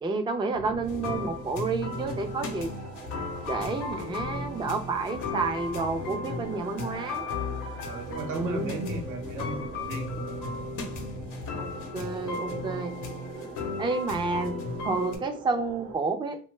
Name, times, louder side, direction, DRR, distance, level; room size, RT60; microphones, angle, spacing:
voice 1, 0.0-2.7 3.4-7.2 8.3-8.7 11.6-11.7 11.9-12.9 13.8-14.6 14.8-16.4, right 3 dB, 15° right, 6 dB, 0.4 m, -30 dB
sound 1, 0.5-16.0, right 3 dB, 50° right, 0.8 m, -42 dB
sound 2, 0.8-15.2, left 3 dB, 85° left, 0.7 m, -35 dB
voice 2, 7.9-10.1, right 3 dB, 85° right, 3 dB, 0.9 m, -35 dB
2.6 x 2.2 x 3.1 m, 0.39 s
cardioid pair, 90°, 30 cm